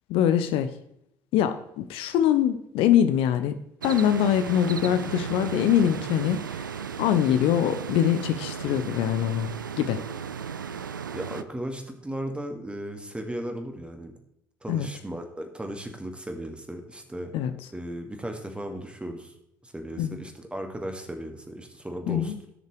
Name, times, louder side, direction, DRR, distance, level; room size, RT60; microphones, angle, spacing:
voice 1, 0.1-0.7 1.3-3.6 3.8-6.7 7.0-10.0 14.7-14.9 17.3-17.5 20.0-20.2 22.1-22.4, left 10 dB, 60° left, 10 dB, 0.6 m, -23 dB
sound 1, 3.8-11.4, right 7 dB, 85° right, 0.4 m, -35 dB
voice 2, 11.1-14.2 14.6-17.3 17.7-19.3 19.6-22.3, right 1 dB, 10° right, 4 dB, 2.0 m, -36 dB
17.0 x 6.6 x 3.3 m, 0.78 s
figure-of-eight pair, 55°, 10 cm